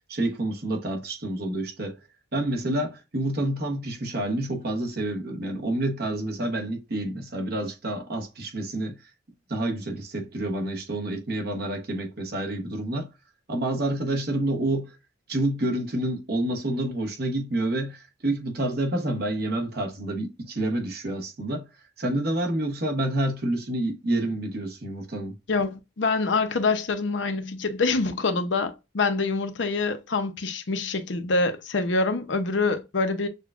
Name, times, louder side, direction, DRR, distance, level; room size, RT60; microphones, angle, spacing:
voice 1, 0.1-2.0 2.3-9.1 9.5-13.1 13.5-15.0 15.3-21.7 22.0-25.4, right 1 dB, 55° right, 1.0 m, -28 dB
voice 2, 25.5-33.3, left 3 dB, 70° left, 0.7 m, -25 dB
6.5 x 2.3 x 2.4 m
head